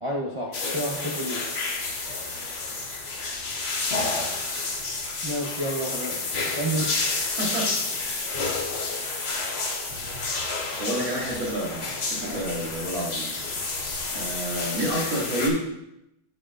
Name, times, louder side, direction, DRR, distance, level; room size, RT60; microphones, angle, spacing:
voice 1, 0.0-1.4 5.2-6.8 12.2-12.4 13.6-13.7, right 1 dB, 35° right, -2 dB, 0.4 m, -30 dB
sound 1, 0.5-15.5, left 3 dB, 40° left, 1.1 m, -30 dB
voice 2, 6.7-7.1 7.4-7.7 10.8-11.8 12.1-13.3 14.1-15.6, right 1 dB, 80° right, -4 dB, 2.9 m, -29 dB
11.0 x 7.6 x 2.5 m, 0.86 s
omnidirectional pair, 2.1 m